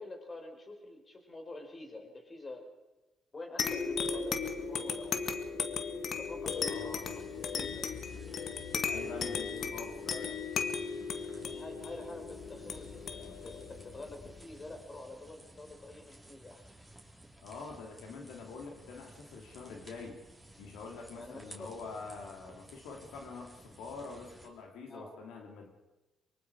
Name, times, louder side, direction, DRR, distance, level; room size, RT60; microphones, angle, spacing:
voice 1, 0.0-2.7 3.3-5.2 6.1-8.2 11.4-16.7 21.2-21.7 24.9-25.1, left 2 dB, 30° left, 4 dB, 4.6 m, -47 dB
sound 1, 3.6-14.7, left 5 dB, 60° left, 1.7 m, -36 dB
sound 2, 6.5-24.5, right 1 dB, ahead, 4.2 m, -56 dB
voice 2, 6.6-7.3 8.9-10.4 17.4-20.2 20.6-25.7, left 4 dB, 90° left, 2 dB, 3.0 m, -45 dB
24.0 x 23.5 x 4.9 m, 1.1 s
cardioid pair, 90°, 0 cm